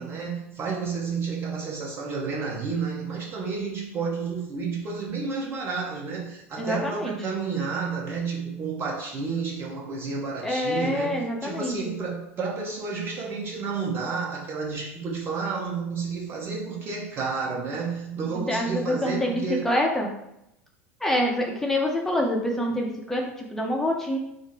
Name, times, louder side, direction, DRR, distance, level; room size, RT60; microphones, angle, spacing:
voice 1, 0.0-19.6, right 5 dB, 30° right, -2 dB, 0.9 m, -31 dB
voice 2, 6.6-7.2 10.4-11.9 18.3-20.1 21.0-24.2, left 1 dB, 5° left, 0 dB, 0.7 m, -26 dB
3.6 x 2.1 x 4.1 m, 0.85 s
figure-of-eight pair, 75°, 7 cm